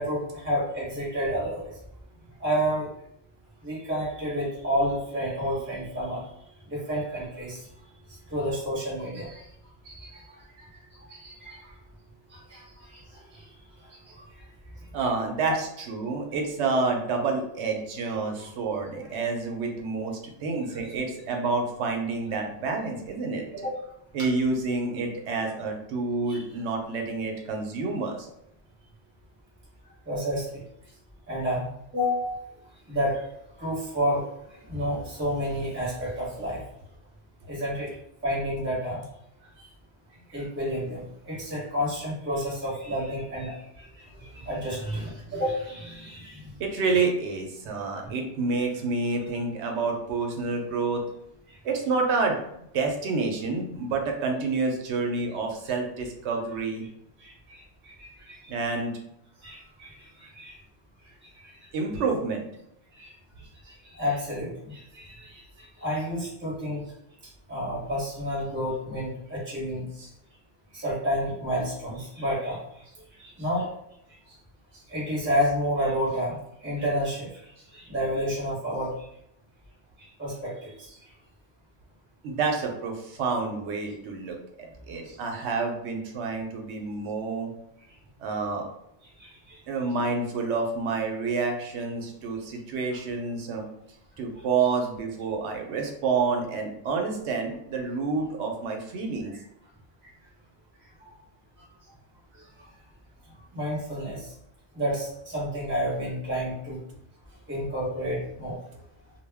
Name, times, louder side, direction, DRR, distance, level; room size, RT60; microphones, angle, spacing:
voice 1, 0.0-1.7 2.4-2.9 3.6-6.3 6.7-7.7 8.3-9.5 9.8-10.2 10.7-11.7 12.3-13.4 14.1-14.2 20.7-20.8 23.6-23.7 26.3-26.4 30.1-30.6 31.3-32.4 32.9-33.2 33.6-34.2 34.7-36.6 37.5-37.9 38.2-39.0 40.3-46.5 48.0-48.1 57.2-58.5 59.4-60.6 61.4-61.5 62.9-63.1 63.6-66.8 67.5-70.1 70.7-72.6 73.2-73.7 74.9-76.4 76.6-77.4 77.7-78.9 80.0-80.9 85.0-85.2 89.2-89.6 101.0-101.1 103.5-104.3 104.7-106.8 107.5-108.6, equal, 10° right, -6 dB, 0.9 m, -30 dB
voice 2, 14.9-23.7 24.1-28.3 46.6-51.0 51.6-52.4 52.7-56.8 58.5-58.9 61.7-62.5 82.2-84.4 84.9-87.5 88.2-88.7 89.7-93.6 94.2-99.3, right 4 dB, 80° right, 2 dB, 0.9 m, -28 dB
2.2 x 2.1 x 3.3 m, 0.77 s
omnidirectional pair, 1.1 m